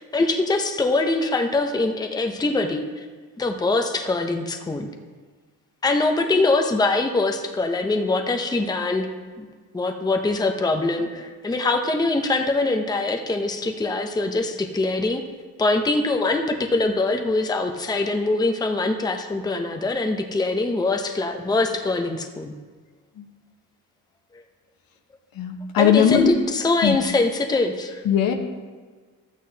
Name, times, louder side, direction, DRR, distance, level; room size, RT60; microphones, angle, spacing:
voice 1, 0.0-3.1 3.4-4.9 5.8-9.5 9.7-15.2 15.6-22.5 24.3-24.4 25.8-28.0, left 2 dB, 10° left, 4 dB, 0.6 m, -23 dB
voice 2, 25.4-26.3 26.8-27.0 28.1-28.3, left 9 dB, 75° left, 3 dB, 1.1 m, -19 dB
13.0 x 8.5 x 2.8 m, 1.5 s
cardioid pair, 115°, 36 cm